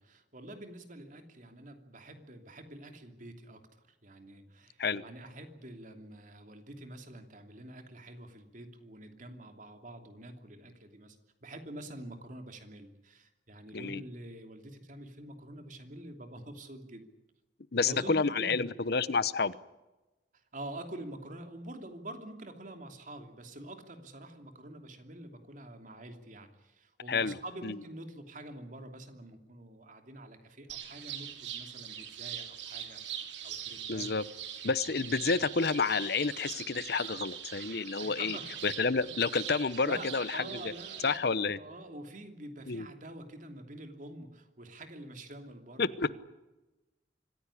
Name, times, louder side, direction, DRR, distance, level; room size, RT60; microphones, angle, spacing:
voice 1, 0.0-11.2 11.4-17.1 17.8-18.7 20.3-34.1 38.0-38.6 39.8-46.1, right 1 dB, 45° right, 6 dB, 2.9 m, -47 dB
voice 2, 17.7-19.6 27.1-27.4 27.6-27.7 33.9-34.2 34.6-38.4 38.6-40.7 41.0-41.6 42.7-42.9 45.8-46.1, left 4 dB, 60° left, 17 dB, 0.9 m, -29 dB
sound 1, 30.7-41.2, right 9 dB, 80° right, 2.8 m, -42 dB
25.5 x 15.5 x 10.0 m, 1.1 s
head